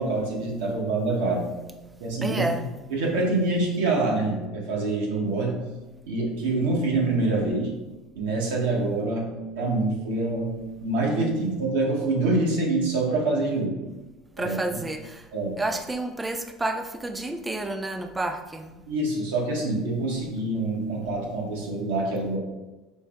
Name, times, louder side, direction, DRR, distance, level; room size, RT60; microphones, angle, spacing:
voice 1, 0.0-1.6 2.0-2.4 2.9-5.7 6.1-7.7 8.1-13.8 14.4-14.6 15.3-15.6 18.9-22.4, right 2 dB, 90° right, 0.9 m, -26 dB
voice 2, 2.2-2.7 14.4-15.3 15.6-18.8, right 2 dB, 15° right, 0.4 m, -30 dB
4.4 x 2.0 x 3.4 m
supercardioid pair, 100°, 0 cm